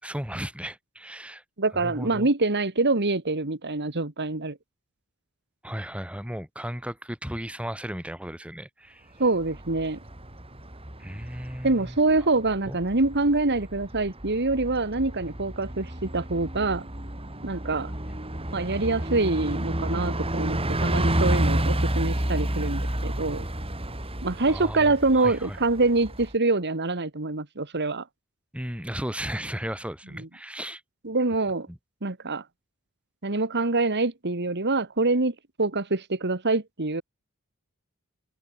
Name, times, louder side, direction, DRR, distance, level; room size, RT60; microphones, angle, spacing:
voice 1, 0.0-1.4 1.7-2.3 5.6-9.1 11.0-12.0 12.7-12.8 24.5-25.6 28.5-30.8 31.7-31.8, equal, 5° right, 3.2 m, -35 dB
voice 2, 1.6-4.6 9.2-10.0 11.6-16.9 17.4-17.9 18.5-23.4 24.2-28.0 31.0-31.7 32.0-32.4 33.2-37.0, right 3 dB, 50° right, 2.0 m, -25 dB
Bus, 9.2-26.3, right 1 dB, 25° right, 3.9 m, -30 dB
head